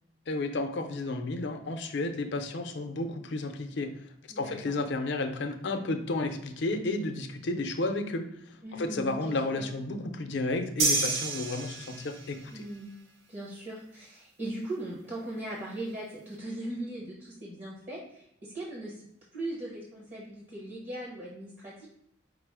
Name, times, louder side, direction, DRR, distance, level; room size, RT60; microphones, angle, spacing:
voice 1, 0.3-3.9 4.4-8.3 8.7-12.6, left 2 dB, 65° left, 6 dB, 0.5 m, -32 dB
voice 2, 4.3-4.7 8.6-9.7 12.5-12.9 13.3-19.1 19.3-21.9, right 1 dB, 40° right, -5 dB, 1.0 m, -39 dB
sound 1, 10.8-12.4, right 3 dB, 60° right, 0.6 m, -29 dB
4.9 x 2.0 x 4.7 m, 0.76 s
head